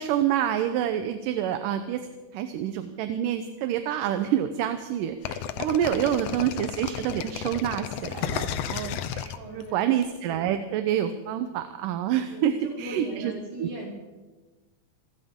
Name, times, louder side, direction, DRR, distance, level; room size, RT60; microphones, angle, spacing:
voice 1, 0.0-2.0 2.3-13.3 13.6-13.7, right 10 dB, 80° right, 8 dB, 2.3 m, -27 dB
sound 1, 5.2-10.0, left 9 dB, 85° left, 1.4 m, -32 dB
voice 2, 9.3-10.0 12.3-13.9, right 1 dB, 60° right, -4 dB, 7.8 m, -40 dB
27.0 x 14.0 x 3.7 m, 1.2 s
omnidirectional pair, 3.9 m